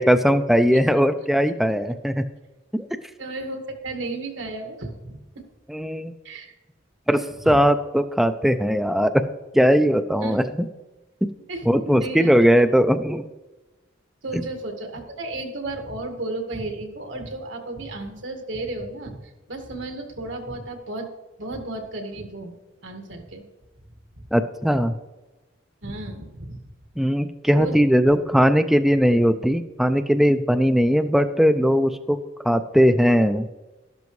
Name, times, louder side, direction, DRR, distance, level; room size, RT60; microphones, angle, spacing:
voice 1, 0.0-2.2 2.7-2.9 5.7-6.1 7.1-7.2 7.5-9.3 9.5-10.4 11.2-11.3 11.7-13.2 24.3-24.9 27.0-32.2 32.5-33.5, equal, ahead, 8 dB, 0.4 m, -19 dB
voice 2, 3.2-5.4 6.2-6.5 7.1-7.6 10.2-10.4 11.5-12.6 14.2-21.1 21.4-22.6 22.8-23.4 25.8-26.6 27.5-28.2, right 2 dB, 80° right, 4 dB, 1.7 m, -34 dB
12.0 x 12.0 x 3.2 m, 1.1 s
head